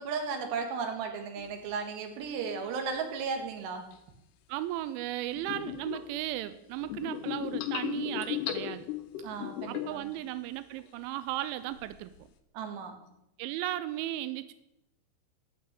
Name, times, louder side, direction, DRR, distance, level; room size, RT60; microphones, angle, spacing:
voice 1, 0.0-3.9 9.2-10.1 12.5-12.9, right 5 dB, 65° right, 4 dB, 3.3 m, -35 dB
sound 1, 1.4-1.5 3.9-4.0 5.3-6.1 6.8-10.2 10.5-11.0 11.7-12.2, left 12 dB, 85° left, 2.3 m, -36 dB
voice 2, 4.5-8.9 9.7-12.1 13.4-14.5, right 14 dB, 85° right, 13 dB, 2.7 m, -35 dB
12.5 x 5.8 x 8.9 m, 0.84 s
omnidirectional pair, 5.9 m